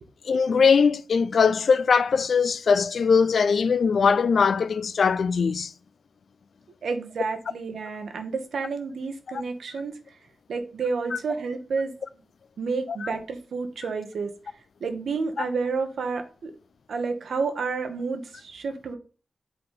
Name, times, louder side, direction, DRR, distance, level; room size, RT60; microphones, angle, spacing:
voice 1, 0.3-5.7 11.1-11.2 13.0-13.1 15.4-15.5, left 5 dB, 75° left, 0.4 m, -21 dB
voice 2, 6.8-10.0 10.5-11.9 12.6-14.3 14.8-16.5 16.9-19.0, right 4 dB, 80° right, 1.2 m, -30 dB
7.6 x 4.0 x 3.7 m
cardioid pair, 55°, 0 cm